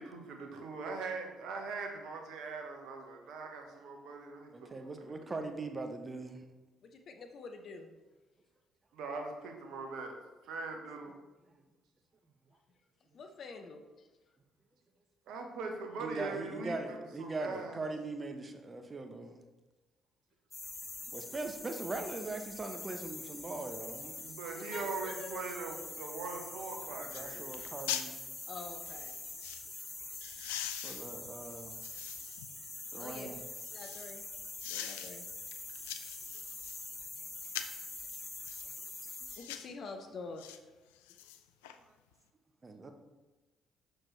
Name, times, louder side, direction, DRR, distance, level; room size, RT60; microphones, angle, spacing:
voice 1, 0.0-4.7 8.9-10.2 10.4-11.2 15.3-17.8 24.2-27.5, right 4 dB, 65° right, 3 dB, 1.0 m, -41 dB
voice 2, 4.5-6.4 11.5-11.6 16.0-19.4 21.1-24.4 27.0-28.2 30.8-31.9 32.9-33.4 36.3-36.4 38.6-38.7 39.2-39.4 41.8-41.9 42.6-42.9, right 3 dB, 30° right, 6 dB, 0.9 m, -41 dB
voice 3, 6.8-7.9 13.1-14.1 24.6-25.4 28.5-29.2 33.0-33.3 33.7-34.3 34.7-35.3 39.4-40.5 41.1-41.2, left 4 dB, 55° left, 5 dB, 0.7 m, -46 dB
sound 1, 20.5-39.4, left 2 dB, 35° left, 1.7 m, -45 dB
sound 2, 26.6-26.7 27.1-27.3 27.5-28.1 28.9-29.7 30.2-32.5 33.0-34.1 34.6-35.1 35.5-36.8 37.4-37.9 38.4-38.7 39.3-39.7 40.4-40.6 40.9-41.8 42.1-42.2, left 11 dB, 75° left, 0.3 m, -42 dB
6.3 x 6.2 x 3.2 m, 1.2 s
figure-of-eight pair, 45°, 0 cm